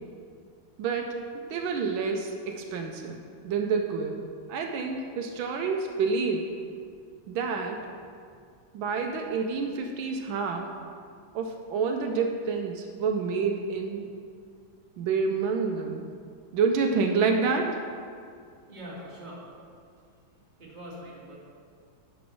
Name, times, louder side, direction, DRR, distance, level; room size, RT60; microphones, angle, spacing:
voice 1, 0.8-6.5 7.3-7.8 8.7-10.7 11.3-14.1 15.0-16.0 16.5-17.8, right 5 dB, 80° right, 3 dB, 1.4 m, -28 dB
voice 2, 18.3-20.3 20.6-21.3, equal, 25° right, -5 dB, 1.7 m, -45 dB
9.3 x 4.0 x 6.2 m, 2.2 s
omnidirectional pair, 2.2 m